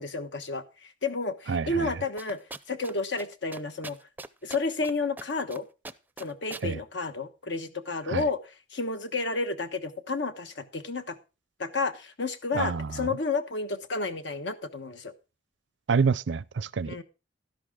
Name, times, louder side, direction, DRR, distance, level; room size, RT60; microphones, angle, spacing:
voice 1, 0.0-2.4 2.7-4.0 4.4-5.6 6.2-11.2 11.6-15.1 16.8-17.0, left 3 dB, 75° left, 1.3 m, -31 dB
voice 2, 1.5-1.9 6.6-6.8 8.1-8.2 12.5-13.1 15.9-17.0, right 5 dB, 80° right, 0.5 m, -27 dB
sound 1, 2.2-2.9 3.2-3.3 3.5-4.9 5.2-5.6 5.8-6.7, right 3 dB, 10° right, 0.5 m, -41 dB
12.5 x 11.0 x 3.7 m
head